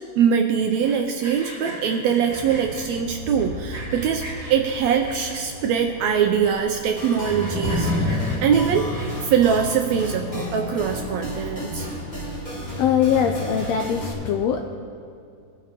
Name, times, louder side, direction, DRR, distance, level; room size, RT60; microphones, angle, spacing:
voice 1, 0.2-4.2 4.5-8.1 8.4-11.9, right 7 dB, 80° right, 4 dB, 1.6 m, -22 dB
Sawing, 0.7-2.8 3.4-4.5 5.0-5.6 6.1-6.2 6.3-6.4 6.8-9.3, right 1 dB, 25° right, 3.1 m, -39 dB
sound 1, 2.3-14.0, left 1 dB, 65° left, 3.4 m, -33 dB
sound 2, 7.0-14.1, equal, 15° left, 2.5 m, -33 dB
voice 2, 12.8-14.7, left 8 dB, 85° left, 4 dB, 1.5 m, -22 dB
20.0 x 10.0 x 2.9 m, 2.4 s
omnidirectional pair, 3.6 m